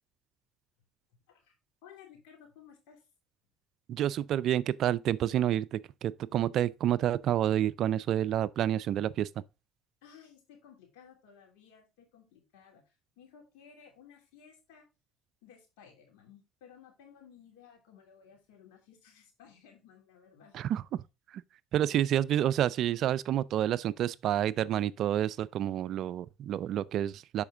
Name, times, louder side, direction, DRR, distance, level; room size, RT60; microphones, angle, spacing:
voice 1, 1.8-3.0 10.0-14.9 15.4-20.6, left 7 dB, 80° left, 2.9 m, -57 dB
voice 2, 3.9-9.4 20.5-21.0 21.3-21.4 21.7-27.4, right 11 dB, 60° right, 0.4 m, -29 dB
7.0 x 5.1 x 3.6 m
supercardioid pair, 80°, 0 cm